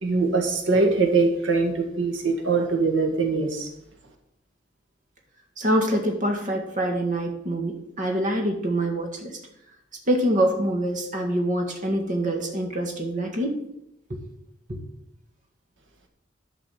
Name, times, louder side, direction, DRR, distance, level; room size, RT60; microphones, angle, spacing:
voice 1, 0.0-3.7, right 3 dB, 85° right, 3 dB, 1.7 m, -22 dB
voice 2, 5.6-9.4 10.1-13.6 14.1-14.2 14.7-14.8, right 1 dB, 45° right, 2 dB, 1.8 m, -25 dB
11.0 x 5.2 x 7.4 m, 0.78 s
head